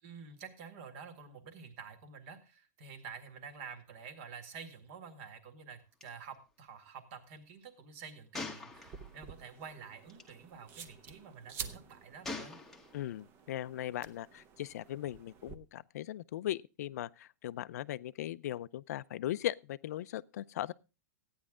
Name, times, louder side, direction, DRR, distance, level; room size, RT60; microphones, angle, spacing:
voice 1, 0.0-12.6, right 6 dB, 45° right, 1.9 m, -49 dB
Gunshot gunfire, 6.0-6.1 6.3-6.5 8.3-9.3 10.1-10.3 12.2-13.2, left 3 dB, 5° left, 1.0 m, -43 dB
sound 1, 8.7-15.6, right 6 dB, 25° right, 0.8 m, -50 dB
voice 2, 12.9-20.7, left 13 dB, 65° left, 0.5 m, -38 dB
14.5 x 9.6 x 3.7 m
supercardioid pair, 165°, 9 cm